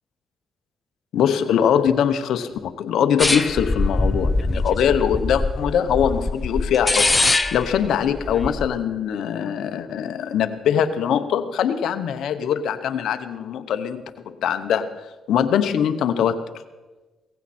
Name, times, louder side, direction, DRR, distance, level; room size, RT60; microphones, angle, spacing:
voice 1, 1.1-7.1 7.5-14.9 15.3-16.4, left 8 dB, 75° left, 9 dB, 0.9 m, -22 dB
sound 1, 3.2-8.7, left 2 dB, 20° left, 0.7 m, -23 dB
17.0 x 15.5 x 4.3 m, 1.2 s
cardioid pair, 80°, 0 cm